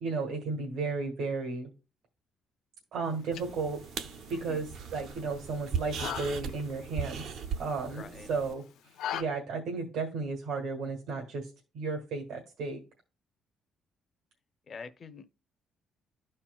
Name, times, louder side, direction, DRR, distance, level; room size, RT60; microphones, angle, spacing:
voice 1, 0.0-1.7 2.9-3.8 4.3-7.3 7.6-11.5 11.7-12.8, right 4 dB, 80° right, 1.6 m, -34 dB
sound 1, 3.0-9.2, left 10 dB, 85° left, 0.6 m, -43 dB
sound 2, 3.3-8.5, right 7 dB, 60° right, 0.6 m, -38 dB
voice 2, 4.3-4.7 7.9-8.3 14.7-15.3, left 5 dB, 30° left, 0.6 m, -45 dB
12.5 x 4.3 x 2.3 m
cardioid pair, 175°, 0 cm